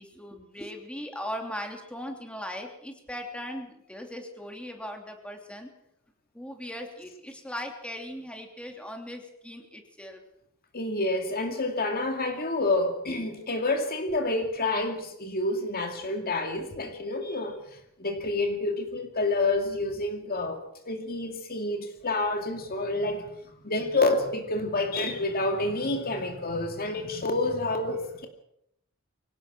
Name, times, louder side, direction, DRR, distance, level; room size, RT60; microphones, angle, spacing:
voice 1, 0.0-5.7 6.3-10.2, equal, 5° left, 3.0 m, -39 dB
voice 2, 10.7-17.6 18.0-28.3, left 2 dB, 45° left, 2.4 m, -28 dB
24.0 x 18.0 x 6.1 m
head